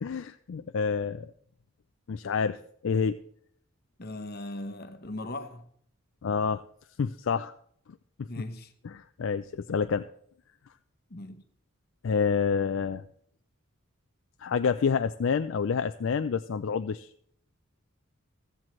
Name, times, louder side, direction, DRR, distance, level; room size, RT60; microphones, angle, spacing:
voice 1, 0.0-1.3 2.1-2.6 2.8-3.2 6.2-6.6 7.0-7.5 8.2-8.3 8.8-10.0 12.0-13.0 14.4-17.1, left 6 dB, 65° left, 0.4 m, -28 dB
voice 2, 4.0-5.6 8.3-8.7 11.1-11.4, left 1 dB, 45° left, 1.0 m, -38 dB
15.0 x 13.5 x 3.2 m
head